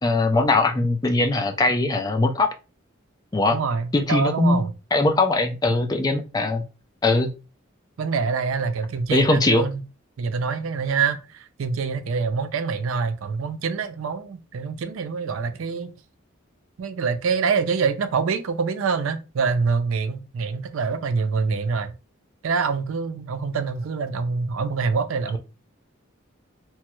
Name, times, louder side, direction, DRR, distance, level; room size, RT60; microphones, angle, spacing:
voice 1, 0.0-2.5 3.3-3.6 3.9-4.6 4.9-6.6 7.0-7.3 9.1-9.6, left 2 dB, 20° left, 0.3 m, -21 dB
voice 2, 3.5-4.7 8.0-9.8 10.2-15.9 16.8-22.0 22.4-25.4, right 5 dB, 75° right, 0.4 m, -25 dB
3.0 x 2.3 x 3.0 m
head